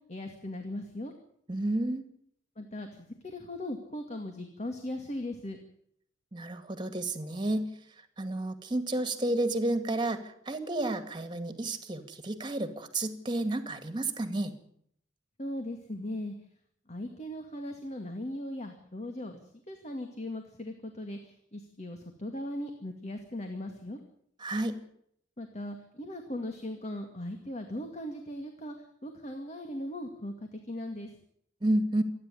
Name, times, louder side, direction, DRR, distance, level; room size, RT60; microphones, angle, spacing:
voice 1, 0.1-1.1 2.6-5.6 15.4-16.3 16.9-19.4 19.7-24.0 25.4-28.8 29.0-31.2, left 1 dB, 35° left, 5 dB, 2.2 m, -38 dB
voice 2, 1.5-2.0 6.3-7.7 8.2-14.5 24.4-24.8 31.6-32.0, right 1 dB, 25° right, 9 dB, 2.2 m, -31 dB
27.0 x 10.0 x 10.0 m, 0.70 s
head